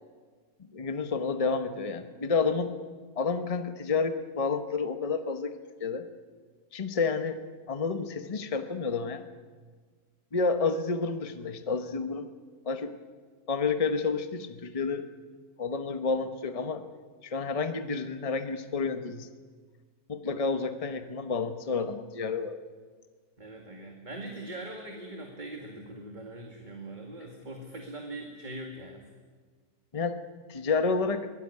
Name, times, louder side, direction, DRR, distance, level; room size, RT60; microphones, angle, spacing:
voice 1, 0.7-2.7 3.2-5.5 5.8-6.1 6.7-7.4 7.7-9.2 10.3-12.3 12.6-12.9 13.5-15.1 15.6-16.8 17.2-19.3 20.1-22.6 29.9-30.2 30.5-31.3, left 4 dB, 25° left, 8 dB, 1.1 m, -30 dB
voice 2, 23.4-29.1, right 1 dB, 30° right, 2 dB, 2.2 m, -41 dB
22.5 x 17.5 x 9.7 m, 1.5 s
omnidirectional pair, 1.5 m